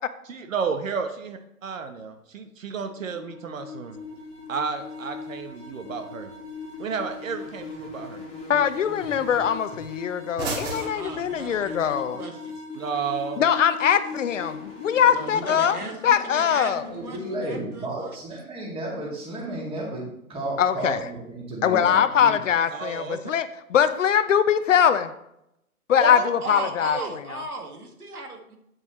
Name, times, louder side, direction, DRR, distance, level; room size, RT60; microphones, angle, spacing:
voice 1, 0.3-4.0 4.5-6.3 6.8-8.2 12.7-13.5 22.7-23.2 26.0-26.3 26.9-27.1, right 5 dB, 60° right, 7 dB, 1.0 m, -32 dB
sound 1, 3.0-17.6, left 4 dB, 15° left, 1.9 m, -40 dB
sound 2, 3.9-11.9, right 3 dB, 45° right, 3.4 m, -41 dB
voice 2, 8.5-12.2 13.4-15.8 16.0-16.8 20.6-21.1 21.6-25.1 25.9-27.4, left 8 dB, 55° left, 12 dB, 0.7 m, -22 dB
voice 3, 10.8-12.5 15.1-18.4 26.4-28.6, right 2 dB, 85° right, 3 dB, 2.0 m, -37 dB
voice 4, 16.8-20.0 20.3-22.3, right 1 dB, 10° right, -2 dB, 2.2 m, -33 dB
9.1 x 8.0 x 3.1 m, 0.80 s
figure-of-eight pair, 130°, 44 cm